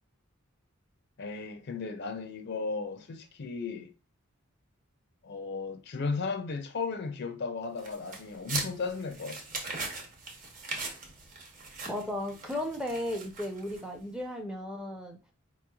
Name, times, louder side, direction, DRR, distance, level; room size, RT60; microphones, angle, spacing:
voice 1, 1.2-3.9 5.2-9.4, left 4 dB, 50° left, 0.4 m, -35 dB
sound 1, 7.8-14.0, right 3 dB, 40° right, 0.8 m, -40 dB
voice 2, 11.9-15.2, left 1 dB, 5° right, 0.4 m, -35 dB
4.2 x 3.0 x 2.2 m
head